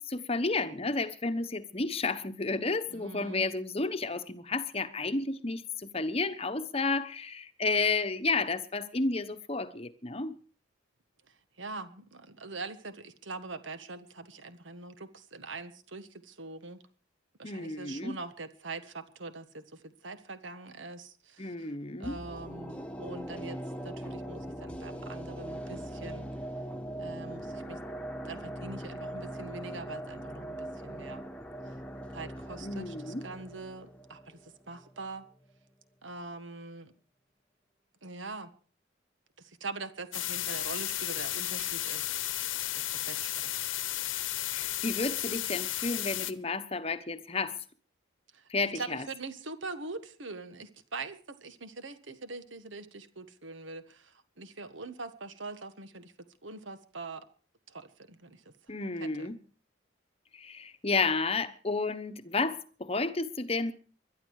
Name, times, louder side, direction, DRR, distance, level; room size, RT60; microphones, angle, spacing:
voice 1, 0.0-10.3 17.4-18.2 21.4-22.2 32.6-33.3 44.5-47.6 48.5-49.0 58.7-59.4 60.3-63.7, left 3 dB, 30° left, 1.0 m, -31 dB
voice 2, 2.9-3.5 11.3-16.8 17.4-21.7 22.0-23.6 23.8-26.3 27.0-27.8 28.2-31.3 32.1-35.2 36.0-36.9 38.0-38.5 39.4-42.5 42.7-43.4 48.3-56.1 56.4-57.2 57.7-58.5 59.0-59.3, right 3 dB, 75° right, 1.5 m, -43 dB
sound 1, 22.0-35.1 35.4-35.5, right 1 dB, 5° left, 1.3 m, -41 dB
sound 2, 40.1-46.3, left 14 dB, 80° left, 1.1 m, -33 dB
21.5 x 11.5 x 4.8 m
head